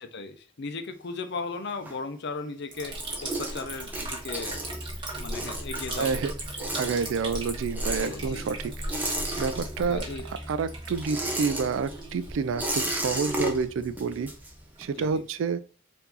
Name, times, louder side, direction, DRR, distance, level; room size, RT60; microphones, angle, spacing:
voice 1, 0.0-4.6 5.2-6.3 7.9-8.5 9.9-10.2 15.0-15.3, left 4 dB, 60° left, 0.6 m, -37 dB
sound 1, 0.9-2.5 2.8-10.1 10.3-15.0, right 1 dB, 10° right, 0.8 m, -34 dB
Liquid, 2.7-15.2, right 1 dB, 25° right, 1.5 m, -37 dB
voice 2, 6.0-8.7 9.4-14.3 14.8-15.6, right 5 dB, 75° right, 0.3 m, -29 dB
4.6 x 2.7 x 3.8 m
head